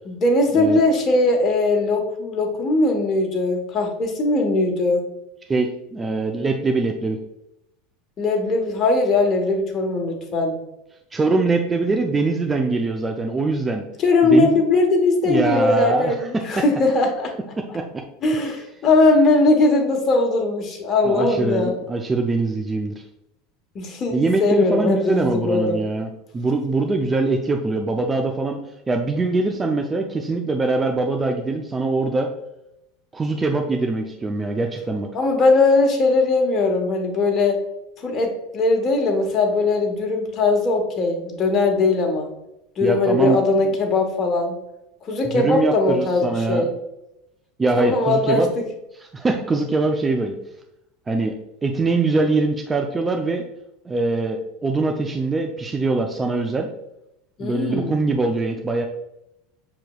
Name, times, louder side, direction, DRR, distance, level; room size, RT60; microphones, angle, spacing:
voice 1, 0.1-5.0 8.2-10.6 14.0-17.3 18.2-21.7 23.7-25.8 35.1-37.6 38.0-42.3 42.8-44.5 45.1-46.7 47.8-48.6 57.4-58.0, left 2 dB, 35° left, 3 dB, 1.1 m, -20 dB
voice 2, 5.5-7.2 11.1-13.8 14.2-14.5 15.2-16.6 17.6-18.0 21.0-23.0 24.1-28.6 28.9-32.3 33.1-35.1 42.8-43.4 45.3-46.7 47.6-48.5 49.1-50.3 51.1-51.3 51.6-53.4 53.9-56.7 57.4-58.8, right 3 dB, 20° right, 3 dB, 0.4 m, -23 dB
6.5 x 2.9 x 2.3 m, 0.86 s
hypercardioid pair, 95°, 0 cm